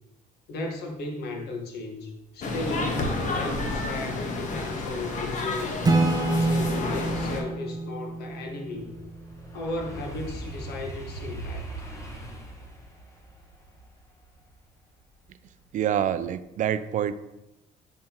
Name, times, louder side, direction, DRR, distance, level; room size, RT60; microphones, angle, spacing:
voice 1, 0.5-3.0 3.3-5.8 6.2-9.0 9.5-11.7, left 2 dB, 75° left, 1 dB, 1.4 m, -35 dB
sound 1, 2.4-7.4, left 2 dB, 45° left, 1.1 m, -30 dB
Acoustic guitar / Strum, 5.8-9.4, right 2 dB, 20° right, 0.7 m, -27 dB
sound 2, 7.7-15.7 16.1-16.5, right 2 dB, 20° left, 1.3 m, -41 dB
voice 2, 15.7-17.1, right 10 dB, 50° right, 13 dB, 0.4 m, -26 dB
6.5 x 5.6 x 2.9 m, 0.93 s
cardioid pair, 110°, 17 cm